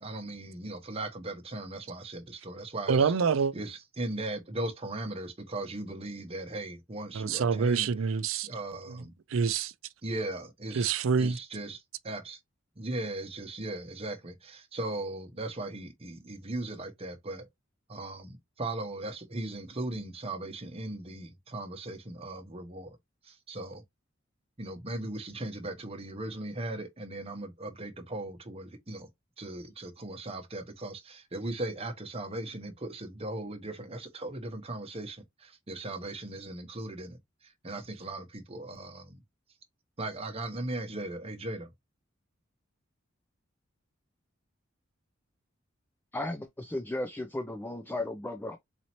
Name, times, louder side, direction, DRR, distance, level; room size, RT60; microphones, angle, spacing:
voice 1, 0.0-3.1 3.5-7.9 8.4-9.1 10.0-10.9 11.2-12.4 12.8-17.5 17.9-23.0 23.2-23.8 24.6-29.1 29.4-39.2 40.0-41.7, right 2 dB, 30° right, 0.9 m, -38 dB
voice 2, 2.9-3.5 7.1-8.5 9.3-9.7 10.7-11.4, right 5 dB, 75° right, 0.4 m, -26 dB
voice 3, 46.1-48.6, left 2 dB, 10° left, 0.4 m, -35 dB
4.1 x 2.8 x 2.9 m
head